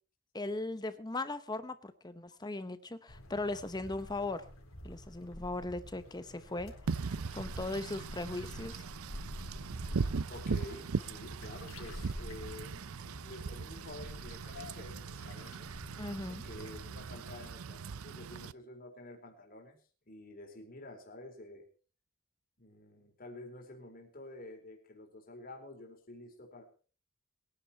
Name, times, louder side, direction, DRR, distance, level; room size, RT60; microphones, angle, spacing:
voice 1, 0.3-4.5 4.8-6.7 7.3-8.8 16.0-16.4, left 2 dB, 20° left, 12 dB, 0.8 m, -38 dB
sound 1, 3.1-17.5, left 1 dB, 80° left, 4.0 m, -49 dB
Wind / Rain, 6.9-18.5, right 5 dB, 85° right, 0.6 m, -39 dB
voice 2, 10.3-15.7 16.3-19.8 20.1-21.6 22.6-26.6, left 1 dB, 40° left, 2 dB, 4.2 m, -49 dB
22.0 x 10.5 x 4.4 m, 0.39 s
head